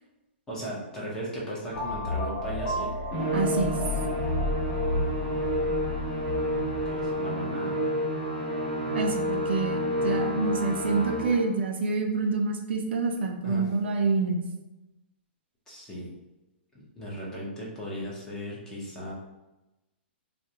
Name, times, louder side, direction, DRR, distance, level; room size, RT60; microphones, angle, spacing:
voice 1, 0.5-2.9 5.6-6.1 6.8-7.9 13.4-13.7 15.7-16.1 16.7-19.1, equal, 10° left, -5 dB, 0.6 m, -37 dB
sound 1, 1.7-7.1, left 2 dB, 60° left, 0.7 m, -32 dB
Musical instrument, 3.1-11.6, equal, 30° left, 0.9 m, -29 dB
voice 2, 3.3-3.8 8.9-14.4, right 3 dB, 70° right, 3 dB, 0.4 m, -27 dB
2.3 x 2.1 x 2.8 m, 0.99 s
hypercardioid pair, 155°, 6 cm